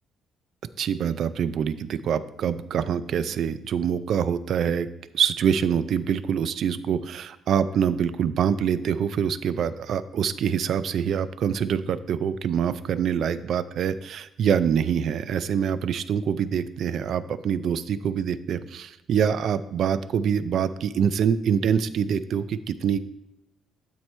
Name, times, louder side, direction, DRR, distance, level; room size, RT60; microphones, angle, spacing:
voice 1, 0.8-4.9 5.1-23.0, right 8 dB, 50° right, 14 dB, 0.4 m, -25 dB
12.0 x 4.5 x 3.2 m, 0.89 s
cardioid pair, 170°, 0 cm